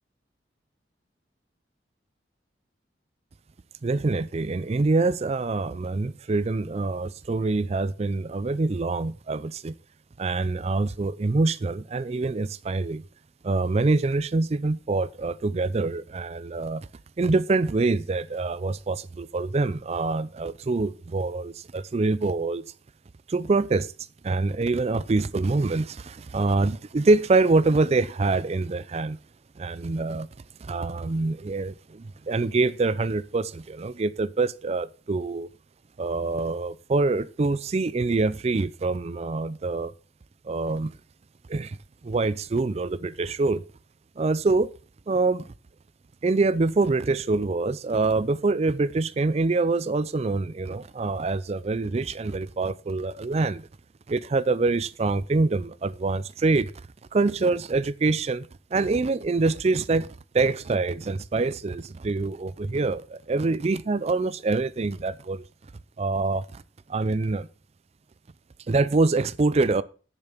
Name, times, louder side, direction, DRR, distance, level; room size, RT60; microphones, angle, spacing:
voice 1, 3.8-9.7 10.2-13.0 13.4-16.9 17.2-22.6 23.3-23.9 24.2-29.2 29.6-30.3 30.6-35.5 36.0-39.9 40.4-40.9 41.5-41.8 42.0-43.6 44.2-44.7 45.1-45.5 46.2-53.7 54.1-56.7 57.1-60.1 60.3-65.4 66.0-66.6 66.9-67.5 68.7-69.8, right 3 dB, 35° right, 0.4 m, -25 dB
10.0 x 7.0 x 5.9 m
head